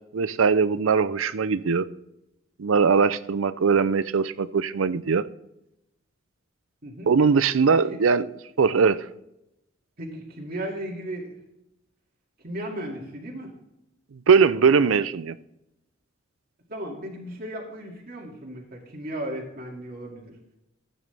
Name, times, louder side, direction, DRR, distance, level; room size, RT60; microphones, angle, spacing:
voice 1, 0.1-1.9 2.6-5.2 7.1-8.3 8.6-9.0 14.3-15.3, right 5 dB, 80° right, 0.5 m, -20 dB
voice 2, 6.8-7.1 7.7-8.0 10.0-11.4 12.4-13.5 16.7-20.4, right 1 dB, 45° right, 2.3 m, -35 dB
14.5 x 9.1 x 3.4 m
head